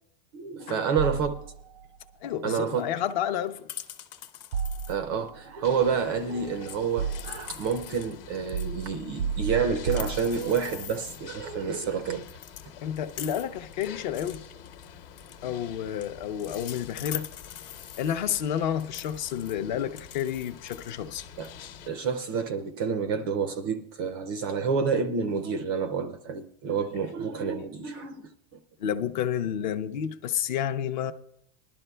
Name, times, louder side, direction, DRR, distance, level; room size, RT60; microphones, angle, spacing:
voice 1, 0.3-1.4 2.4-2.9 4.9-12.3 21.4-21.5 21.9-28.6, right 6 dB, 25° right, 0.3 m, -29 dB
sound 1, 1.0-1.9 4.5-5.4 6.3-7.6 8.5-10.8, right 6 dB, 90° right, 0.6 m, -32 dB
voice 2, 2.2-3.6 12.8-14.4 15.4-17.3 18.0-21.2 28.8-31.1, left 9 dB, 50° left, 0.6 m, -30 dB
sound 2, 2.7-6.2 6.6-8.1 8.5-11.4 11.8-11.9 12.2-18.2 18.8-22.1, left 11 dB, 35° left, 1.1 m, -44 dB
sound 3, 5.6-21.9, left 7 dB, 70° left, 1.1 m, -47 dB
20.5 x 12.0 x 2.2 m
supercardioid pair, 180°, 30 cm